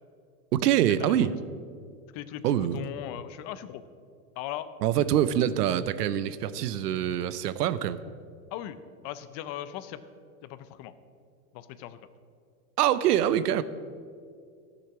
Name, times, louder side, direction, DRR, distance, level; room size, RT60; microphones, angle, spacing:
voice 1, 0.5-1.3 2.4-2.8 4.8-8.0 12.8-13.6, right 11 dB, 85° right, 15 dB, 0.7 m, -25 dB
voice 2, 2.1-3.8 4.4-4.7 8.5-10.0 10.4-10.9 11.5-12.0, left 12 dB, 35° left, 13 dB, 0.6 m, -39 dB
13.0 x 7.0 x 6.0 m, 2.3 s
supercardioid pair, 130°, 46 cm